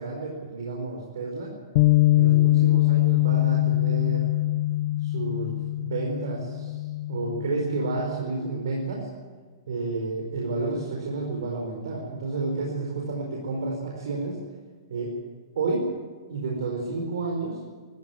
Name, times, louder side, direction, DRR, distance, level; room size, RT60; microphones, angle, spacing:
voice 1, 0.0-1.5 2.1-4.3 5.0-6.8 7.1-9.1 9.7-14.4 14.9-15.1 15.5-15.9 16.3-17.6, right 3 dB, 80° right, -1 dB, 4.7 m, -30 dB
Bass guitar, 1.8-8.0, left 16 dB, 40° left, 0.6 m, -23 dB
21.0 x 14.5 x 9.5 m, 1.4 s
hypercardioid pair, 170°, 2 cm